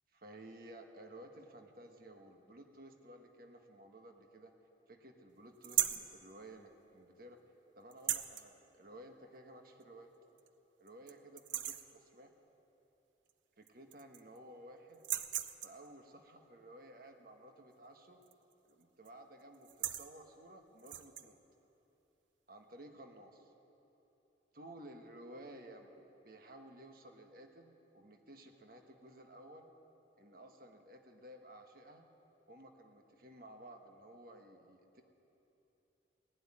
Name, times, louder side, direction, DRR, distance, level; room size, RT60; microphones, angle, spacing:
voice 1, 0.1-4.5 4.9-7.4 7.7-10.1 10.8-12.3 13.6-15.1 15.6-18.2 18.6-21.4 22.5-23.5 24.5-29.7 30.1-32.1 32.5-35.0, right 1 dB, 50° right, 4 dB, 1.3 m, -55 dB
sound 1, 5.6-6.1 7.9-8.5 9.8-9.9 10.4-10.5 10.9-11.1 11.4-11.9 13.3-13.4 13.7-14.4 14.9-15.9 18.2-18.5 18.8-19.1 19.5-20.1 20.8-21.3, right 12 dB, 85° right, 0.7 m, -37 dB
17.5 x 7.9 x 10.0 m, 3.0 s
head